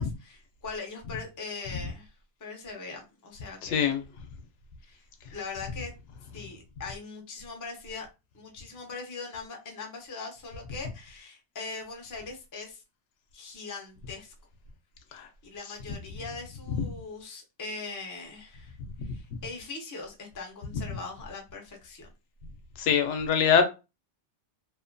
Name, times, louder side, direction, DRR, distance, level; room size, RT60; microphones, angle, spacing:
voice 1, 0.0-2.1 2.4-3.9 4.8-5.1 5.3-5.9 6.3-8.1 8.3-12.8 13.3-14.3 15.1-22.1, left 4 dB, 30° left, 0.3 m, -41 dB
voice 2, 3.6-4.0 15.1-15.3 22.8-23.6, left 7 dB, 80° left, 0.9 m, -23 dB
2.7 x 2.2 x 2.5 m
omnidirectional pair, 1.2 m